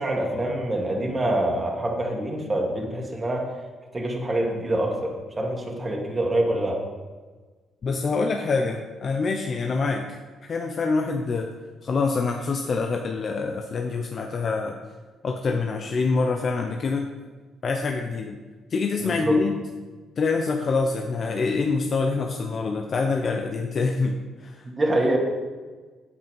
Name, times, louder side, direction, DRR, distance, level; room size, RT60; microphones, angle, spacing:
voice 1, 0.0-3.5 3.9-6.8 19.0-19.4 24.7-25.2, right 1 dB, 25° right, -1 dB, 2.0 m, -25 dB
voice 2, 7.8-11.5 11.8-14.8 15.2-17.1 17.6-18.4 18.7-19.6 20.2-24.6, left 4 dB, 50° left, 3 dB, 0.8 m, -25 dB
8.6 x 8.1 x 5.3 m, 1.3 s
cardioid pair, 90°, 0 cm